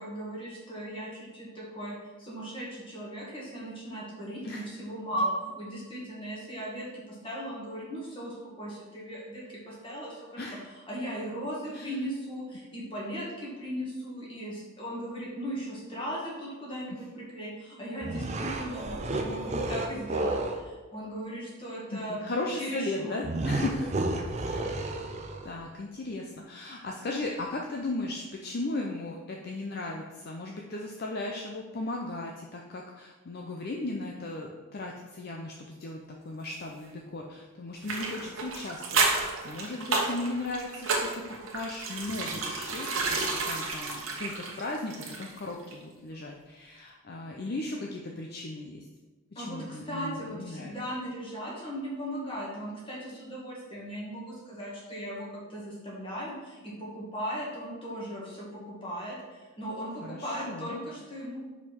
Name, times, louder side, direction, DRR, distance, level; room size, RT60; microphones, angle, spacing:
voice 1, 0.0-10.4 10.9-22.2 22.5-23.2 49.4-61.4, equal, 25° left, -5 dB, 2.0 m, -37 dB
sound 1, 18.0-20.6 23.2-25.5, right 2 dB, 30° right, 0.5 m, -31 dB
voice 2, 21.9-23.9 24.4-24.9 25.4-41.2 41.5-48.8 49.3-50.8 60.0-60.8, left 2 dB, 45° left, 0 dB, 0.5 m, -36 dB
sound 2, 37.8-45.4 45.7-45.8, right 3 dB, 65° right, 1.1 m, -31 dB
5.4 x 4.9 x 4.5 m, 1.3 s
head